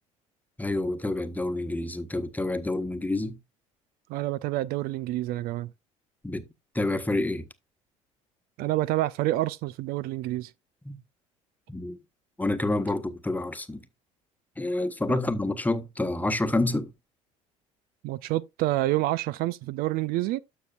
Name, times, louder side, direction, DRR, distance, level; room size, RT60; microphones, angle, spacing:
voice 1, 0.6-3.4 6.2-6.4 6.7-7.5 10.8-11.0 11.7-12.0 12.4-13.8 14.6-16.9, left 2 dB, 10° left, 1.1 m, -28 dB
voice 2, 4.1-5.7 8.6-10.5 15.1-15.2 18.0-20.4, right 16 dB, 60° right, 0.4 m, -28 dB
12.5 x 6.6 x 2.4 m
hypercardioid pair, 65°, 17 cm